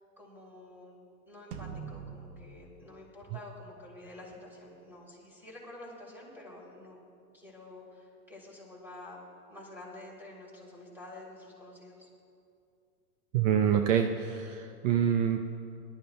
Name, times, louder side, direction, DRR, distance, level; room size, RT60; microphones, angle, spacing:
voice 1, 0.2-7.0 7.3-9.2 9.5-12.1, left 1 dB, 5° right, -3 dB, 3.1 m, -49 dB
sound 1, 1.5-4.0, right 6 dB, 20° right, 0.4 m, -45 dB
voice 2, 13.3-15.5, right 8 dB, 60° right, 5 dB, 0.8 m, -26 dB
20.0 x 12.5 x 2.3 m, 2.4 s
hypercardioid pair, 120°, 44 cm